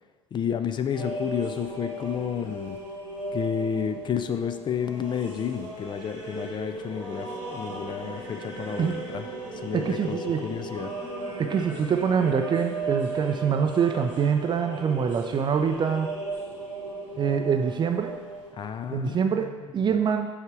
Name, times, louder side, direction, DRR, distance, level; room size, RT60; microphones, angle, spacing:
voice 1, 0.3-2.8 3.3-9.3 9.5-10.9 18.5-19.7, left 8 dB, 30° left, 8 dB, 0.4 m, -31 dB
sound 1, 0.9-18.5, right 2 dB, 85° right, 1.3 m, -36 dB
voice 2, 9.7-10.4 11.4-16.1 17.2-18.1 18.9-20.3, right 7 dB, 30° right, 5 dB, 0.5 m, -25 dB
5.4 x 5.0 x 4.6 m, 1.4 s
figure-of-eight pair, 55°, 16 cm